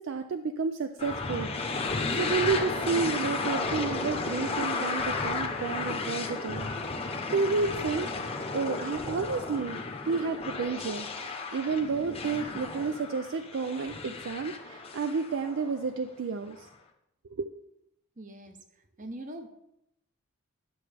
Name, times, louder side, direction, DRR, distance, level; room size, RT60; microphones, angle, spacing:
voice 1, 0.0-1.5 1.8-6.7 7.3-8.1 8.5-16.7 17.3-17.5, right 4 dB, 60° right, 9 dB, 0.4 m, -31 dB
sound 1, 1.0-15.9, left 3 dB, 25° left, 0.8 m, -33 dB
voice 2, 18.2-19.5, right 1 dB, 35° right, 7 dB, 0.8 m, -43 dB
11.0 x 6.7 x 3.4 m, 0.82 s
head